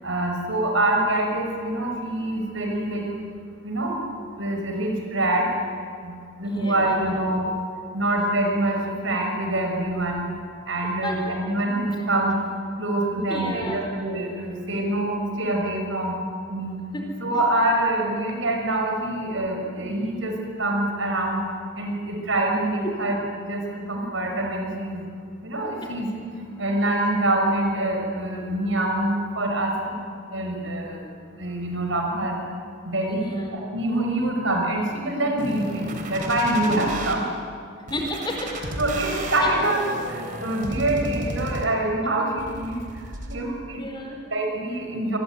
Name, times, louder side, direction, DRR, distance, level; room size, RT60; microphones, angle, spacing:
voice 1, 0.0-3.0 3.6-4.0 4.4-5.5 6.0-7.5 7.9-10.3 10.7-12.4 12.8-16.2 16.5-16.8 17.2-20.3 20.6-21.4 21.8-23.6 23.9-25.0 25.4-26.2 26.6-29.9 30.3-31.0 31.4-32.4 32.8-33.3 33.5-37.3 38.8-42.8 43.3-43.8 44.3-45.2, right 1 dB, 70° right, 2 dB, 5.9 m, -25 dB
voice 2, 6.4-7.0 11.0-11.1 13.3-13.9 16.9-17.1 22.8-23.0 33.1-33.5 37.9-38.6 43.8-44.2, left 1 dB, 20° left, 2 dB, 4.8 m, -32 dB
sound 1, 35.4-37.1 37.9-41.9 42.4-43.4, right 1 dB, 40° right, 3.6 m, -33 dB
27.0 x 22.5 x 9.4 m, 2.2 s
head